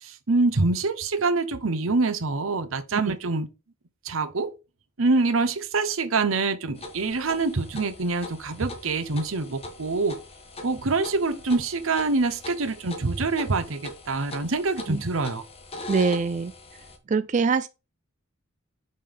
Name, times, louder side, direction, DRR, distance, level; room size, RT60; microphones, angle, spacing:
voice 1, 0.0-3.5 4.0-4.5 5.0-10.2 10.6-15.4, right 3 dB, 85° right, 0.9 m, -25 dB
sound 1, 6.8-17.0, left 2 dB, 30° left, 1.4 m, -41 dB
voice 2, 15.9-16.5 17.1-17.7, right 4 dB, 35° right, 0.4 m, -23 dB
5.4 x 5.2 x 5.6 m
head